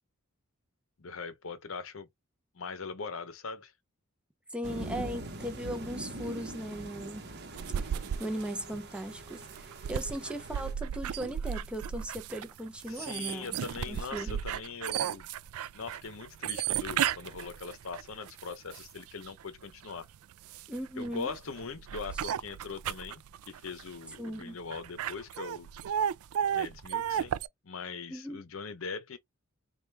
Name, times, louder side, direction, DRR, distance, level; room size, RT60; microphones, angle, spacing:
voice 1, 1.0-2.1 2.5-3.7 12.9-15.3 15.7-20.1 21.0-23.2 23.5-25.7 26.5-27.4 27.6-29.2, left 4 dB, 65° left, 0.7 m, -41 dB
voice 2, 4.5-7.3 7.8-7.9 8.2-13.6 13.9-14.4 20.7-21.3 24.2-24.6 28.1-28.4, right 1 dB, 5° right, 0.6 m, -38 dB
sound 1, 4.6-10.7, right 1 dB, 50° right, 0.9 m, -43 dB
sound 2, 7.6-19.3 19.8-27.5, right 9 dB, 85° right, 0.3 m, -34 dB
4.3 x 2.3 x 3.3 m
head